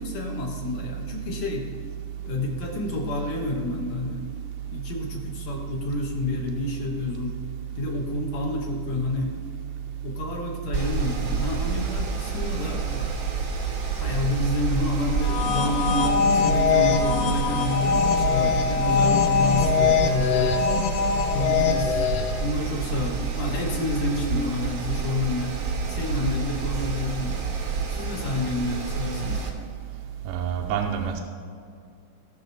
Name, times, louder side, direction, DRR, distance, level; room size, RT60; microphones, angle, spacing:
voice 1, 0.0-1.7 2.3-4.2 4.7-7.3 7.8-9.3 10.0-13.2 14.0-20.5 21.3-22.0 22.4-25.6 25.9-27.4 27.9-29.4, left 2 dB, 60° left, 0 dB, 2.3 m, -29 dB
Mechanical fan, 10.7-29.5, right 5 dB, 55° right, 1.1 m, -29 dB
sound 1, 15.1-22.5, left 6 dB, 85° left, 1.4 m, -22 dB
voice 2, 30.3-31.2, right 8 dB, 80° right, 1 dB, 2.2 m, -27 dB
19.0 x 6.4 x 4.0 m, 2.3 s
omnidirectional pair, 3.8 m